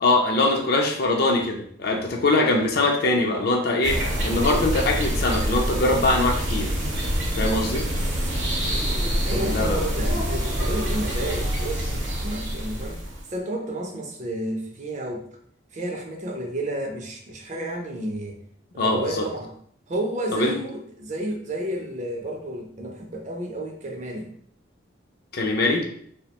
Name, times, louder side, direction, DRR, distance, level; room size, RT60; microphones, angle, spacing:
voice 1, 0.0-6.7 7.4-7.8 9.3-9.8 18.8-19.3 20.3-20.6 25.3-25.8, left 2 dB, 50° left, 2 dB, 0.4 m, -22 dB
sound 1, 3.8-13.3, equal, 65° right, 0.7 m, -26 dB
Laughter, 8.6-12.3, equal, 80° left, 0.7 m, -39 dB
voice 2, 9.2-13.0 13.3-15.3 15.7-18.4 18.7-19.5 19.9-24.3, right 1 dB, 35° right, 2 dB, 0.4 m, -31 dB
2.3 x 2.1 x 2.8 m, 0.62 s
head